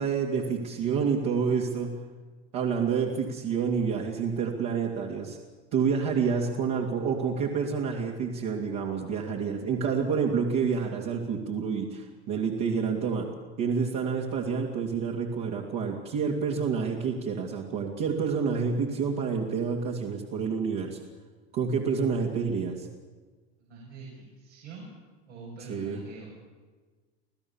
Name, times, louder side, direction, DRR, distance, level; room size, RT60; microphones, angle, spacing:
voice 1, 0.0-2.0 2.5-5.4 5.7-13.3 13.6-21.0 21.5-22.9 25.7-26.0, right 6 dB, 55° right, -2 dB, 2.8 m, -28 dB
voice 2, 23.6-24.9 25.3-26.3, right 3 dB, 85° right, -5 dB, 7.3 m, -44 dB
27.0 x 16.0 x 7.3 m, 1.4 s
supercardioid pair, 110°, 32 cm